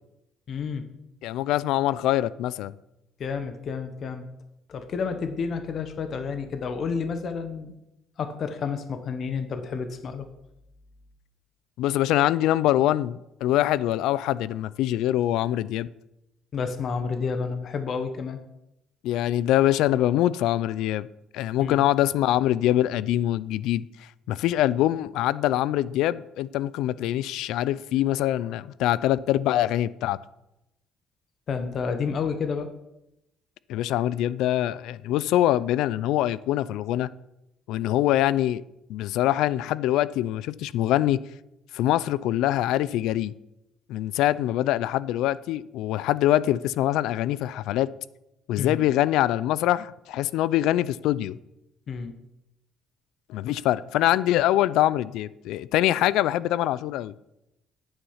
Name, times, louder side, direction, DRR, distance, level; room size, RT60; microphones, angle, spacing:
voice 1, 0.5-0.8 3.2-4.3 4.7-7.7 8.2-10.3 16.5-18.4 21.6-21.8 31.5-32.7 48.6-48.8 51.9-52.1, left 5 dB, 45° left, 1.0 m, -30 dB
voice 2, 1.2-2.7 11.8-15.9 19.0-21.1 21.3-23.9 24.3-30.2 33.7-37.1 37.7-38.6 38.9-41.2 41.7-43.3 43.9-47.9 48.5-51.4 53.3-57.1, left 13 dB, 85° left, 0.4 m, -24 dB
9.8 x 8.9 x 5.6 m
cardioid pair, 140°, 0 cm